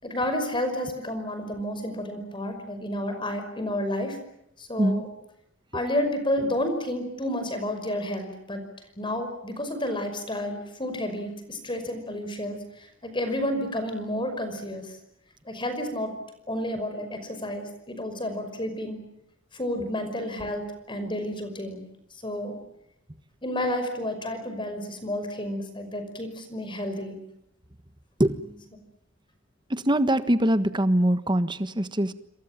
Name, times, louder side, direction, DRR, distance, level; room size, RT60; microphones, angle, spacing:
voice 1, 0.0-4.2 4.6-5.1 5.7-8.6 9.0-14.9 15.5-16.1 16.5-19.0 19.5-21.8 22.2-22.6 23.4-27.2, left 1 dB, 25° left, 8 dB, 5.5 m, -30 dB
voice 2, 28.2-28.6 29.7-32.1, right 1 dB, 25° right, 12 dB, 1.4 m, -23 dB
28.0 x 26.5 x 7.5 m, 0.80 s
head